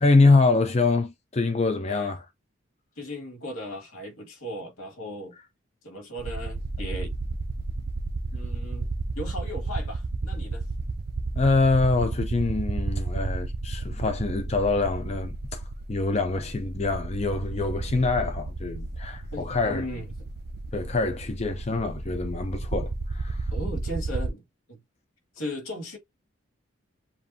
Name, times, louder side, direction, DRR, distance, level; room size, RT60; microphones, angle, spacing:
voice 1, 0.0-2.2 11.4-15.6 15.9-19.8 20.7-23.5, left 3 dB, 30° left, 0.5 m, -24 dB
voice 2, 3.0-5.3 5.8-7.2 8.3-10.6 19.3-20.1 23.5-24.4 24.7-24.8 25.4-26.0, equal, 90° left, 2.3 m, -37 dB
sound 1, 6.2-24.3, right 3 dB, 50° right, 0.5 m, -32 dB
7.2 x 2.6 x 2.7 m
head